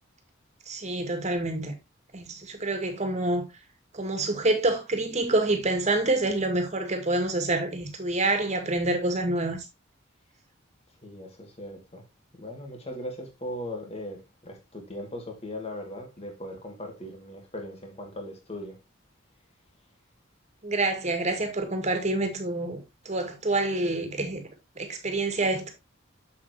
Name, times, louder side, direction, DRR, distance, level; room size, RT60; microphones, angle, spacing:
voice 1, 0.7-1.7 2.1-3.4 3.9-9.7 20.6-24.5 24.8-25.7, right 2 dB, 35° right, 2.1 m, -27 dB
voice 2, 11.0-12.0 12.4-18.8, left 1 dB, 30° left, 2.5 m, -39 dB
7.3 x 7.2 x 3.1 m
head